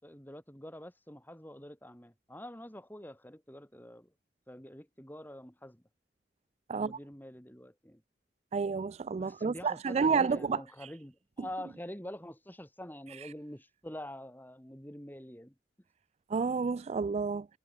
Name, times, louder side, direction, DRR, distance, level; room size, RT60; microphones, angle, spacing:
voice 1, 0.0-4.1 4.5-5.8 6.7-8.0 9.2-15.5, left 1 dB, 10° left, 6.7 m, -46 dB
voice 2, 8.5-10.6 16.3-17.5, right 5 dB, 35° right, 0.3 m, -30 dB
head